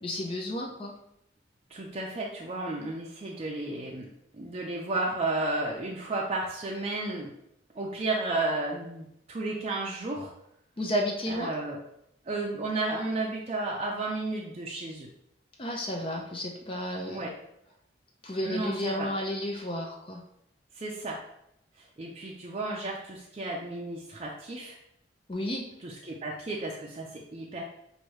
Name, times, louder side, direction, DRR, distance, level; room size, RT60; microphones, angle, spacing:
voice 1, 0.0-0.9 10.8-11.5 15.6-17.3 18.2-20.2 25.3-25.6, left 1 dB, 30° left, 0 dB, 0.6 m, -32 dB
voice 2, 1.7-7.3 7.7-10.3 11.3-11.8 12.2-15.1 17.0-17.3 18.4-19.1 20.7-21.2 21.8-24.8 25.8-27.6, right 2 dB, 35° right, -2 dB, 0.5 m, -33 dB
6.1 x 2.6 x 3.1 m, 0.77 s
head